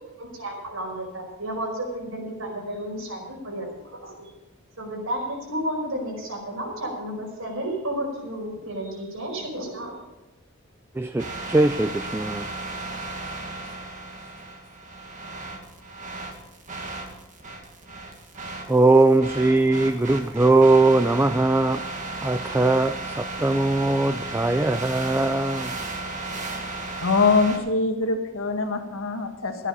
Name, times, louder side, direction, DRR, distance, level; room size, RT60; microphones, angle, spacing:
voice 1, 0.2-4.3 4.8-9.9, right 1 dB, 85° right, 0 dB, 5.2 m, -32 dB
voice 2, 10.9-12.6 18.7-21.8 22.2-25.8, right 2 dB, 10° right, 10 dB, 0.3 m, -20 dB
sound 1, 11.2-27.6, right 2 dB, 40° right, 1.8 m, -35 dB
voice 3, 27.0-29.7, left 4 dB, 75° left, 5 dB, 1.7 m, -23 dB
14.5 x 10.5 x 5.5 m, 1.0 s
head